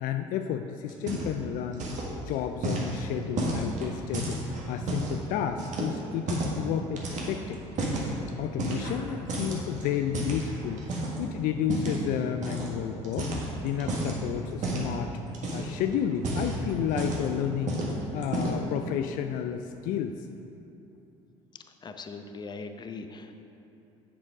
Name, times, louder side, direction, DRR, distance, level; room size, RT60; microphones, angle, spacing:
voice 1, 0.0-1.8 2.3-7.6 8.4-10.8 11.2-13.3 13.6-15.1 15.5-17.8 18.1-20.3, left 9 dB, 65° left, 7 dB, 0.4 m, -31 dB
sound 1, 0.9-1.5 1.7-2.1 2.6-5.2 5.6-6.6 7.0-8.1 8.6-9.0 9.3-11.2 11.7-12.0 12.4-12.7 13.0-14.2 14.6-14.9 15.3-15.8 16.1-17.3 17.7-17.9 18.2-18.7, right 2 dB, 55° right, 1.7 m, -31 dB
voice 2, 21.8-23.4, left 4 dB, 30° left, 7 dB, 0.7 m, -40 dB
7.4 x 6.9 x 4.8 m, 2.9 s
hypercardioid pair, 70°, 15 cm